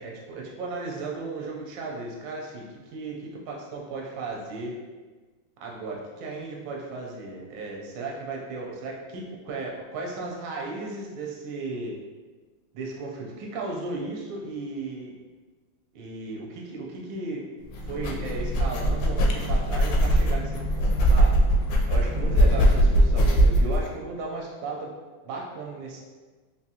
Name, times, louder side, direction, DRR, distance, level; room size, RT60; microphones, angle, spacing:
voice 1, 0.0-2.6 2.9-4.7 5.6-11.9 12.7-15.1 15.9-17.5 17.8-21.4 21.9-24.9 25.2-26.0, right 3 dB, 70° right, -1 dB, 1.3 m, -35 dB
sound 1, 17.7-23.8, equal, 75° left, 1.1 m, -21 dB
3.7 x 2.5 x 2.8 m, 1.3 s
omnidirectional pair, 2.2 m